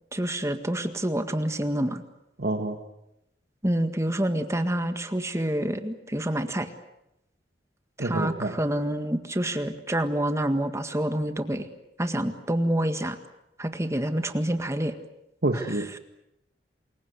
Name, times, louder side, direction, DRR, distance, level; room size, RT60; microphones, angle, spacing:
voice 1, 0.1-2.0 3.6-6.7 8.0-11.7 12.0-13.2 13.6-14.9 15.5-15.6, right 1 dB, 15° right, 8 dB, 1.8 m, -27 dB
voice 2, 2.4-2.8 8.0-8.6 15.4-16.0, right 2 dB, 65° right, 4 dB, 1.7 m, -27 dB
28.0 x 22.5 x 8.1 m, 0.85 s
head